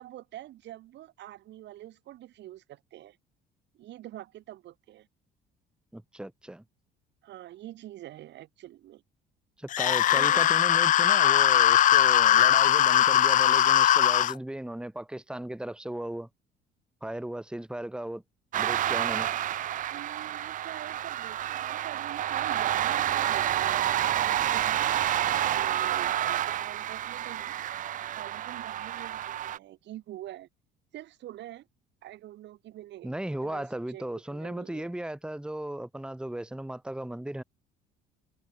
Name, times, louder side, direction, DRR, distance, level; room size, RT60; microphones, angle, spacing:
voice 1, 0.0-3.2 3.7-5.1 7.2-9.0 10.1-10.5 19.9-23.9 24.4-27.5 28.1-30.5 30.9-31.7 32.0-33.1 33.4-34.9, right 14 dB, 65° right, 2.0 m, -45 dB
voice 2, 5.9-6.6 9.6-16.3 17.0-18.2 18.5-19.3 33.0-37.4, right 1 dB, 5° right, 1.9 m, -36 dB
sound 1, 9.7-14.3, left 11 dB, 40° left, 0.4 m, -20 dB
sound 2, 18.5-29.6, right 12 dB, 40° right, 0.4 m, -29 dB
supercardioid pair, 75°, 20 cm